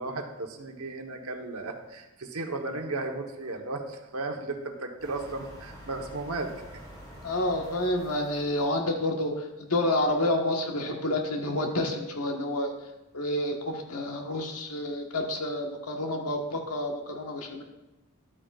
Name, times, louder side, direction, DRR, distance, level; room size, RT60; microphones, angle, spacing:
voice 1, 0.0-6.8, right 2 dB, 70° right, 3 dB, 1.1 m, -35 dB
sound 1, 5.0-8.8, equal, 15° left, 3.1 m, -47 dB
voice 2, 7.2-12.7 13.1-17.6, left 1 dB, 85° left, 2 dB, 1.4 m, -29 dB
12.0 x 8.9 x 2.4 m, 1.0 s
head